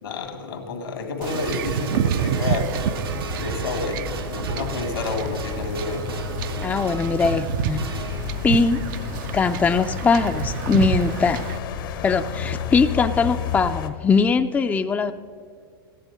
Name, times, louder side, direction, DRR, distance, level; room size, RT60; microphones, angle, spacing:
voice 1, 0.0-2.8 3.4-6.0, left 4 dB, 80° left, 4 dB, 2.0 m, -30 dB
Wind / Ocean / Boat Water vehicle, 1.2-11.6, right 9 dB, 60° right, 0.5 m, -29 dB
sound 1, 1.2-8.7 9.6-9.7, right 4 dB, 90° right, 1.3 m, -37 dB
sound 2, 2.4-13.9, left 8 dB, 65° left, 1.0 m, -32 dB
voice 2, 6.6-7.9 8.4-8.8 9.3-11.4 12.0-15.1, left 5 dB, 15° left, 9 dB, 0.4 m, -21 dB
14.0 x 10.0 x 5.3 m, 2.2 s
hypercardioid pair, 95°, 12 cm